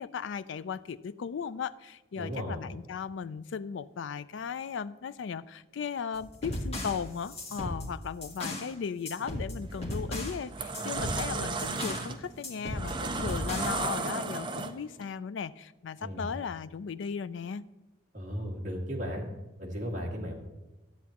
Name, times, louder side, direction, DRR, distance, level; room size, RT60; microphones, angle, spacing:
voice 1, 0.0-17.6, left 6 dB, 70° left, 16 dB, 0.4 m, -37 dB
voice 2, 2.1-2.6 16.0-16.3 18.1-19.2 19.6-20.3, equal, 40° right, -3 dB, 2.0 m, -35 dB
sound 1, 6.1-8.7 9.1-10.4 10.7-12.1 12.4-13.9, left 1 dB, 30° left, 1.5 m, -36 dB
sound 2, 9.6-9.9 10.3-15.0, right 3 dB, 25° right, 0.5 m, -34 dB
12.0 x 8.2 x 2.9 m, 1.1 s
head